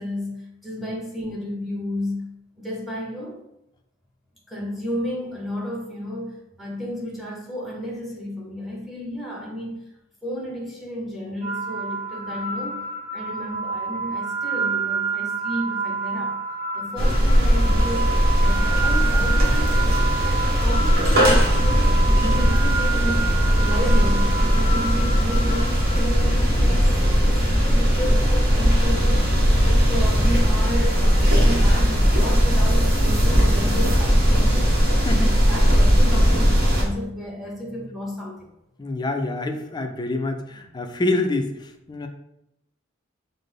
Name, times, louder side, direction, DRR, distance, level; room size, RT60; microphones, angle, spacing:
voice 1, 0.0-2.2 2.6-3.4 4.5-9.8 10.2-12.8 13.1-16.4 16.7-19.8 20.2-29.4 29.6-34.7 35.2-38.5, equal, ahead, -2 dB, 1.0 m, -32 dB
sound 1, 11.4-26.5, right 4 dB, 25° right, 1.1 m, -29 dB
sound 2, 17.0-36.8, equal, 50° right, 1.0 m, -18 dB
voice 2, 35.0-35.4 36.1-36.2 38.8-42.1, left 2 dB, 20° left, 5 dB, 0.4 m, -26 dB
5.8 x 2.0 x 3.4 m, 0.84 s
head